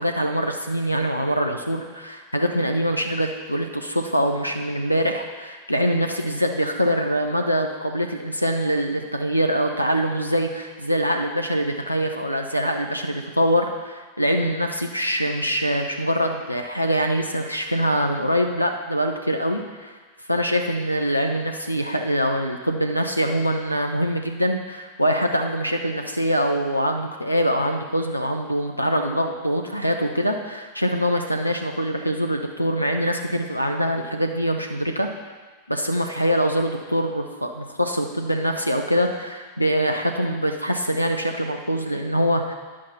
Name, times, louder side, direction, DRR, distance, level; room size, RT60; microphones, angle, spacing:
voice 1, 0.0-20.0 20.3-35.1 35.7-42.5, equal, 90° left, 3 dB, 0.6 m, -24 dB
10.5 x 7.5 x 4.1 m, 1.4 s
figure-of-eight pair, 90°, 0 cm